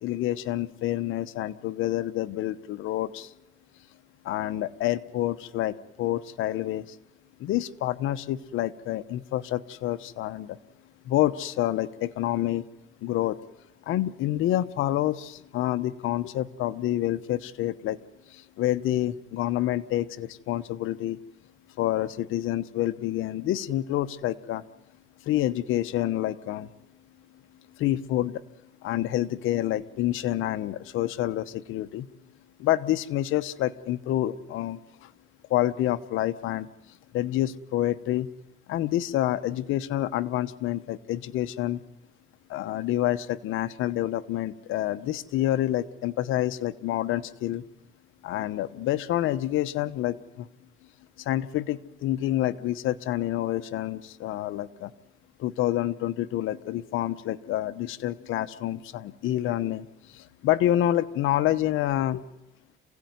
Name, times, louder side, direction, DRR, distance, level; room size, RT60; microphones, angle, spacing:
voice 1, 0.0-3.3 4.2-7.0 7.4-10.6 11.0-12.6 13.0-13.4 13.9-18.0 18.3-21.2 21.8-24.6 25.2-26.7 27.8-28.4 28.8-32.1 32.6-35.1 35.5-36.7 37.1-38.3 38.7-41.8 42.5-47.6 48.2-50.5 51.2-54.9 55.4-62.2, left 13 dB, 90° left, 13 dB, 1.0 m, -28 dB
28.0 x 17.0 x 9.5 m, 0.98 s
cardioid pair, 90°, 20 cm